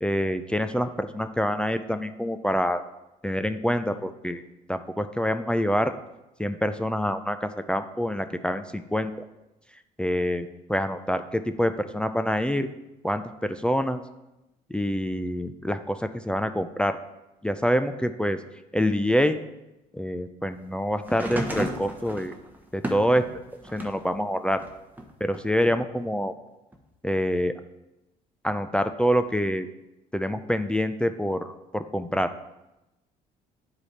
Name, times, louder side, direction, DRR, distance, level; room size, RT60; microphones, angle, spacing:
voice 1, 0.0-2.8 3.2-4.4 4.7-5.9 6.4-9.1 10.0-12.7 13.0-14.0 14.7-17.0 17.4-18.4 18.7-19.4 19.9-22.3 22.7-23.2 23.7-24.6 25.2-26.3 27.0-27.5 28.4-29.7 30.1-32.3, equal, 5° left, 8 dB, 0.4 m, -26 dB
sound 1, 21.0-24.1 24.6-25.7 26.7-26.8, right 1 dB, 10° right, 1.1 m, -34 dB
8.5 x 4.8 x 4.2 m, 0.96 s
supercardioid pair, 75°, 17 cm